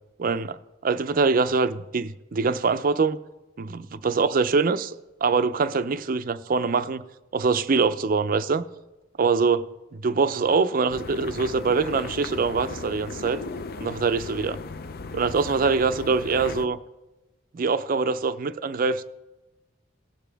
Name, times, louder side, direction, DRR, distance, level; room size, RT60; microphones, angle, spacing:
voice 1, 0.2-0.6 0.8-3.2 3.6-4.9 5.2-7.0 7.3-8.6 9.2-13.4 13.8-14.6 15.1-16.8 17.5-19.0, right 4 dB, 45° right, 0.4 m, -24 dB
sound 1, 10.9-16.7, left 4 dB, 50° left, 0.4 m, -36 dB
19.0 x 6.9 x 3.4 m
head